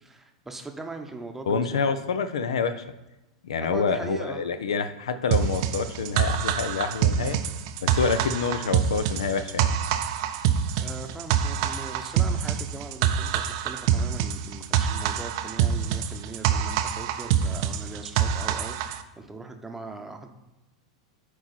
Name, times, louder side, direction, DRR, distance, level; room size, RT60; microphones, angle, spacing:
voice 1, 0.0-1.9 3.7-4.4 7.2-7.3 10.8-20.3, right 3 dB, 10° right, 5 dB, 0.8 m, -40 dB
voice 2, 1.5-2.8 3.4-7.4 7.8-9.7, left 5 dB, 70° left, 11 dB, 0.5 m, -27 dB
sound 1, 5.3-19.0, right 9 dB, 55° right, 0.5 m, -25 dB
7.9 x 4.7 x 4.3 m, 1.0 s
figure-of-eight pair, 90°, 3 cm